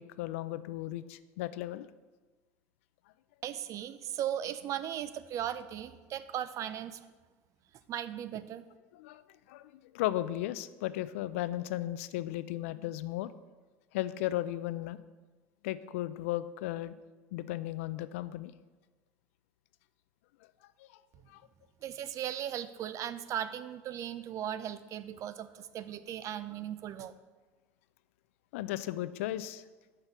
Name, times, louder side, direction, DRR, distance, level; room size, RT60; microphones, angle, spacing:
voice 1, 0.0-1.9 8.9-9.2 9.5-13.3 13.9-15.0 15.6-16.9 17.3-18.5 20.8-20.9 21.3-21.4 28.5-29.6, left 14 dB, 80° left, 14 dB, 0.4 m, -35 dB
voice 2, 3.4-7.0 7.9-8.6 21.8-27.1, right 10 dB, 50° right, 13 dB, 0.5 m, -37 dB
6.5 x 5.8 x 5.8 m, 1.3 s
supercardioid pair, 90°, 7 cm